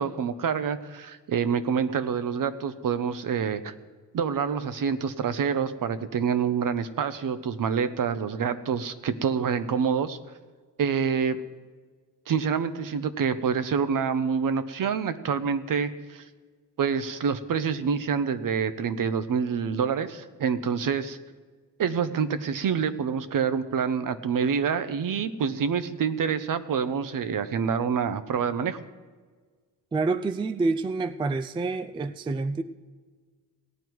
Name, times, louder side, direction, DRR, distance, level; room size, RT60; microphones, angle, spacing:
voice 1, 0.0-3.7 4.1-10.2 10.8-11.4 12.3-16.2 16.8-21.2 21.8-28.8, right 6 dB, 55° right, 12 dB, 0.8 m, -27 dB
voice 2, 29.9-32.6, right 3 dB, 15° right, 11 dB, 0.3 m, -27 dB
17.5 x 9.2 x 4.6 m, 1.5 s
cardioid pair, 105°, 40 cm